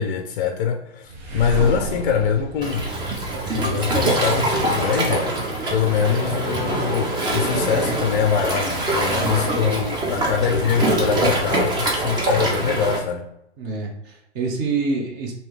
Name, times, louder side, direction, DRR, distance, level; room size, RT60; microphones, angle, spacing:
voice 1, 0.0-2.9 3.5-13.3, left 7 dB, 50° left, 0.4 m, -23 dB
sound 1, 1.1-4.0, right 3 dB, 65° right, 0.9 m, -31 dB
Waves surf, 2.6-13.0, right 2 dB, 15° right, 0.5 m, -23 dB
voice 2, 9.1-9.8 13.6-15.3, right 3 dB, 35° right, 0.8 m, -27 dB
3.1 x 2.8 x 3.1 m
hypercardioid pair, 115°, 34 cm